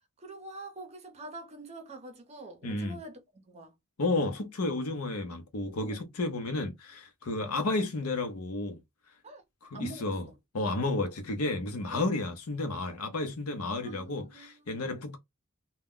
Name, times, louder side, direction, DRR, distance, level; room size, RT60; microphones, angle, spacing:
voice 1, 0.2-3.7 5.8-6.1 9.2-9.4 9.7-10.2 11.9-12.2 13.8-15.1, right 2 dB, 30° right, 0.7 m, -45 dB
voice 2, 2.6-3.0 4.0-8.8 9.6-10.2 10.5-15.2, left 2 dB, 80° left, 0.7 m, -32 dB
2.2 x 2.1 x 3.7 m
head